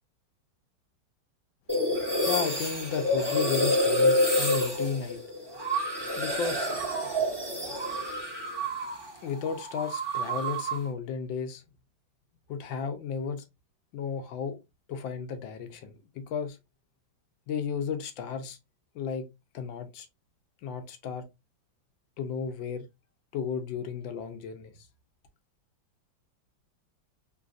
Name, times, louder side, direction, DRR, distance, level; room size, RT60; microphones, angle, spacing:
sound 1, 1.7-9.1 9.3-10.9, equal, 15° right, 1.2 m, -28 dB
voice 1, 2.1-5.2 6.2-6.8 9.2-11.6 12.5-13.4 13.9-14.6 14.9-16.6 17.5-18.6 18.9-19.2 19.5-20.1 20.6-21.2 22.2-22.8 23.3-24.7, left 6 dB, 80° left, 1.4 m, -33 dB
3.8 x 2.5 x 2.4 m
omnidirectional pair, 2.1 m